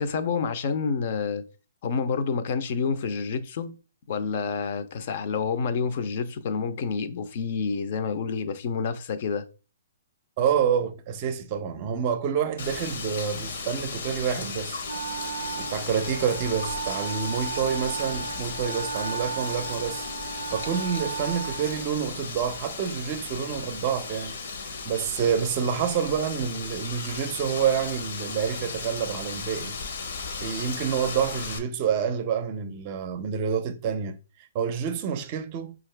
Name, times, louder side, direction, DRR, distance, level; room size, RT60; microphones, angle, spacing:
voice 1, 0.0-1.4 1.8-3.8 4.1-9.4, left 5 dB, 50° left, 0.6 m, -28 dB
voice 2, 10.4-14.8 15.6-20.1 20.5-24.3 24.9-29.8 30.4-34.2 34.5-35.7, right 7 dB, 35° right, 0.5 m, -28 dB
Wind, 12.6-31.6, left 4 dB, 65° left, 0.9 m, -36 dB
Wind instrument woodwind instrument, 14.8-22.4, right 6 dB, 90° right, 0.4 m, -35 dB
5.4 x 2.4 x 3.2 m
hypercardioid pair, 150°, 0 cm